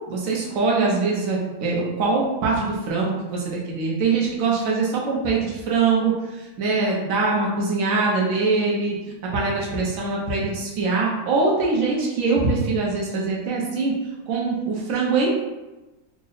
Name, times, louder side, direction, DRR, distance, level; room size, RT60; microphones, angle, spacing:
voice 1, 0.1-9.0 9.3-14.0 14.3-15.3, right 4 dB, 65° right, -3 dB, 1.2 m, -23 dB
3.7 x 2.0 x 3.9 m, 1.1 s
omnidirectional pair, 1.6 m